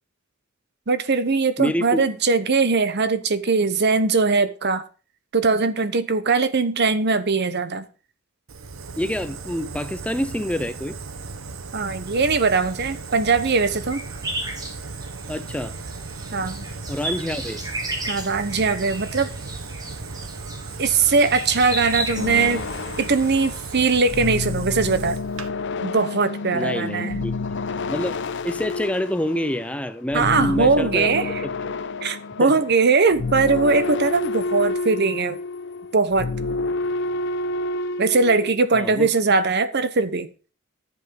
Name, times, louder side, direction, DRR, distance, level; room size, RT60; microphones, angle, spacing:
voice 1, 0.9-4.8 5.3-7.8 11.7-14.0 16.3-16.7 18.1-19.3 20.8-22.6 23.0-25.2 25.8-27.2 30.1-31.4 32.0-35.4 35.9-36.3 38.0-40.3, right 4 dB, 55° right, 0.9 m, -20 dB
voice 2, 1.6-2.0 9.0-11.0 15.3-15.8 16.9-17.6 26.5-27.6 27.9-28.2 28.4-31.7 32.4-32.5 38.7-39.1, left 1 dB, 5° left, 0.4 m, -27 dB
Fire, 8.5-25.5, right 4 dB, 75° right, 1.0 m, -37 dB
sound 1, 12.5-24.1, right 1 dB, 20° right, 2.0 m, -35 dB
sound 2, 22.2-32.8 33.1-38.5, left 3 dB, 55° left, 0.6 m, -29 dB
10.5 x 7.4 x 5.3 m
head